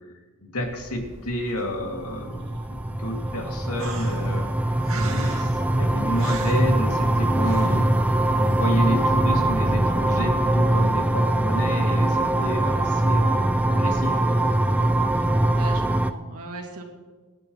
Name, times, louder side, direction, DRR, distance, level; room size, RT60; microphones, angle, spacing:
voice 1, 0.4-7.9 8.4-14.5, equal, 85° left, 1 dB, 2.4 m, -31 dB
sound 1, 0.6-15.5, equal, 55° right, 2.4 m, -47 dB
sound 2, 1.7-16.1, right 1 dB, 5° right, 0.3 m, -22 dB
sound 3, 3.8-8.9, right 2 dB, 70° right, 2.0 m, -36 dB
voice 2, 15.5-16.8, right 3 dB, 90° right, 1 dB, 2.4 m, -38 dB
25.0 x 10.5 x 3.1 m, 1.4 s
head